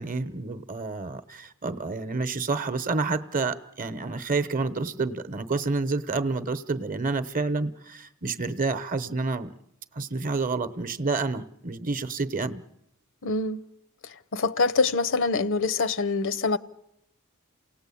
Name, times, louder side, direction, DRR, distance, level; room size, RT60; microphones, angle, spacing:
voice 1, 0.0-9.5 9.9-12.6, right 3 dB, 40° right, 0.9 m, -29 dB
voice 2, 13.2-13.6 14.0-16.6, left 4 dB, 60° left, 0.8 m, -25 dB
28.5 x 18.0 x 8.5 m
head